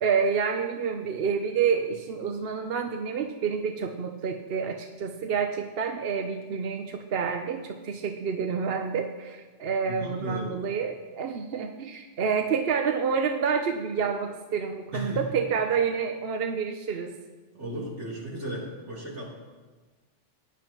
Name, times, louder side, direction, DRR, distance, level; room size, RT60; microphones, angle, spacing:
voice 1, 0.0-17.1, right 6 dB, 60° right, 5 dB, 0.8 m, -28 dB
voice 2, 9.9-10.5 14.9-15.2 17.5-19.3, right 1 dB, 75° right, -6 dB, 3.7 m, -35 dB
18.0 x 10.0 x 3.0 m, 1.3 s
omnidirectional pair, 1.2 m